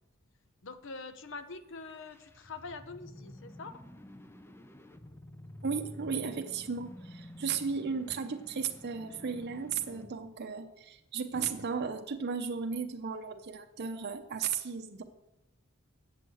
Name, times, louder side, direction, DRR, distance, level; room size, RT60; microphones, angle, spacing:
voice 1, 0.6-3.8, left 4 dB, 60° left, 11 dB, 0.7 m, -44 dB
sound 1, 1.7-10.3, left 1 dB, 10° left, 0.5 m, -50 dB
voice 2, 5.6-15.0, right 5 dB, 50° right, 5 dB, 0.7 m, -35 dB
8.5 x 6.2 x 7.7 m, 0.93 s
head